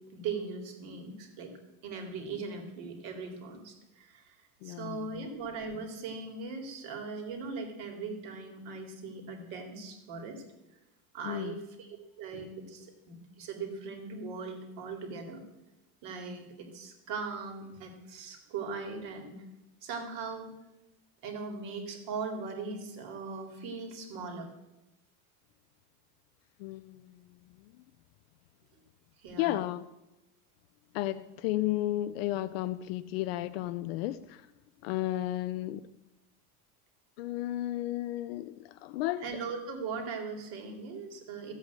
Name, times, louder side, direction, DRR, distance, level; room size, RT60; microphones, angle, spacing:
voice 1, 0.1-1.5 1.8-4.3 4.6-10.4 11.1-11.9 12.2-15.4 16.0-19.3 19.8-20.5 21.2-24.5 29.2-29.6 39.2-41.5, right 4 dB, 45° right, 2.8 m, -39 dB
voice 2, 4.6-5.3 11.2-11.6 26.6-27.2 27.7-27.8 29.4-29.9 30.9-34.5 34.8-35.9 37.2-39.3, left 15 dB, 45° left, 0.4 m, -33 dB
14.0 x 8.1 x 8.3 m
supercardioid pair, 175°, 44 cm